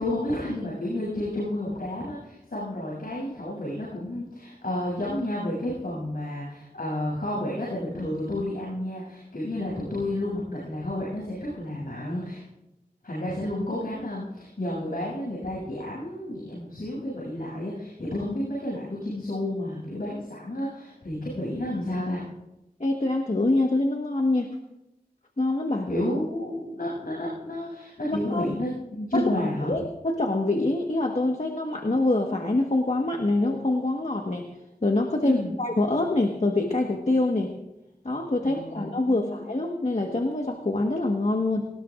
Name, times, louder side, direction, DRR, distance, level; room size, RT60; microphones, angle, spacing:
voice 1, 0.0-12.4 13.0-22.3 25.9-29.7 35.2-35.5 38.4-39.4, left 1 dB, 80° left, -6 dB, 7.3 m, -31 dB
voice 2, 22.8-24.6 25.4-25.9 28.1-28.5 29.1-29.3 29.7-34.5 34.8-37.5 38.0-41.7, left 2 dB, 50° left, 2 dB, 1.5 m, -25 dB
20.5 x 19.5 x 2.5 m, 0.91 s
wide cardioid pair, 50°, 15 cm